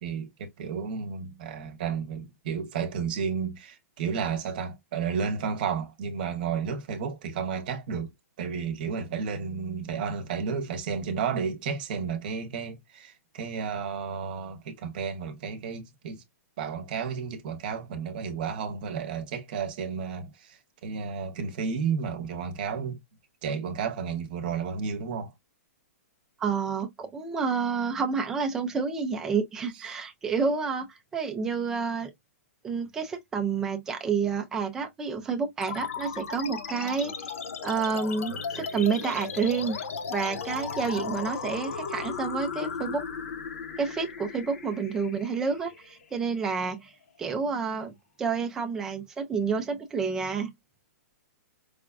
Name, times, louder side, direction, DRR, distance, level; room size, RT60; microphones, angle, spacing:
voice 1, 0.0-8.1 8.4-16.2 16.6-23.0 23.4-25.3 29.9-30.0, right 6 dB, 35° right, 0.8 m, -32 dB
voice 2, 26.4-30.9 31.1-32.1 32.6-37.3 37.6-39.8 40.1-43.0 43.8-46.9 47.2-47.9 48.2-50.5, right 5 dB, 5° right, 0.4 m, -29 dB
sound 1, 35.6-46.6, left 6 dB, 60° left, 0.8 m, -36 dB
4.9 x 2.3 x 2.2 m
hypercardioid pair, 175°, 9 cm